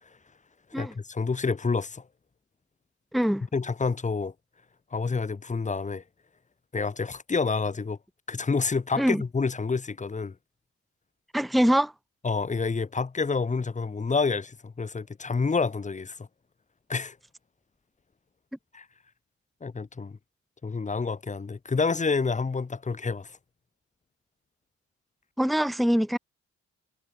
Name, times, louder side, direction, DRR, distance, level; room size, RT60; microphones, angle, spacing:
voice 1, 0.8-2.0 3.5-4.3 4.9-6.0 6.7-8.0 8.3-10.3 12.2-16.3 16.9-17.1 18.7-18.8 19.6-20.2 20.6-23.4, left 4 dB, 25° left, 1.5 m, -28 dB
voice 2, 3.1-3.4 9.0-9.2 11.3-11.9 25.4-26.2, equal, ahead, 1.1 m, -23 dB
cardioid pair, 90°, 30 cm